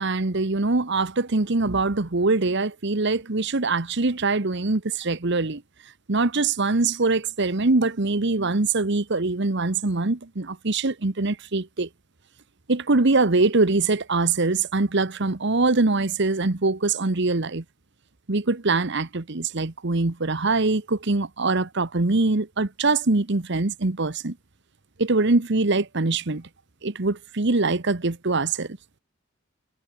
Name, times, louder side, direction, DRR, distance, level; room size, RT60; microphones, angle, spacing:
voice 1, 0.0-5.6 6.1-11.9 12.7-17.6 18.3-24.4 25.0-26.5 26.8-28.8, right 3 dB, 55° right, 1.2 m, -23 dB
head